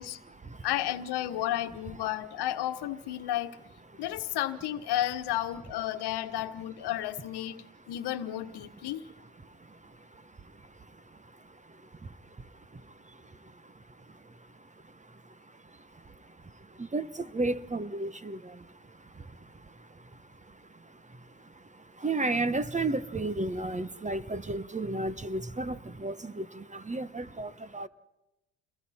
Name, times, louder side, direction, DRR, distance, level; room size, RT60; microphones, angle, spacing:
voice 1, 0.0-0.7 2.0-2.1 3.2-3.3 3.9-4.1 6.6-6.7 7.6-8.0 8.8-27.9, right 2 dB, 15° right, 1.1 m, -36 dB
voice 2, 0.6-3.6 4.0-9.0, left 13 dB, 65° left, 1.4 m, -32 dB
29.5 x 22.5 x 4.3 m
supercardioid pair, 70°, 42 cm